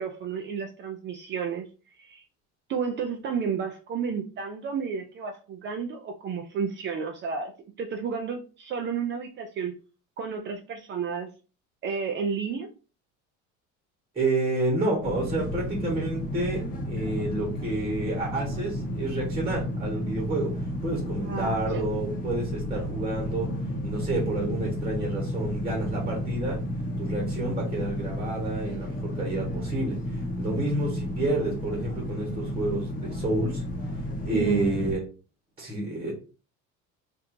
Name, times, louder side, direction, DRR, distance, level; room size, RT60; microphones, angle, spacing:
voice 1, 0.0-1.7 2.0-2.2 2.7-7.5 7.8-9.8 10.2-11.3 11.8-12.7 21.2-21.8 34.3-34.7, right 6 dB, 40° right, 4 dB, 0.5 m, -31 dB
voice 2, 14.1-23.5 23.8-26.6 27.0-33.6 34.2-35.0 35.6-36.1, right 2 dB, 20° right, -1 dB, 1.2 m, -29 dB
sound 1, 15.0-34.9, equal, 30° left, 0.8 m, -32 dB
4.3 x 2.6 x 2.6 m, 0.34 s
cardioid pair, 150°, 30 cm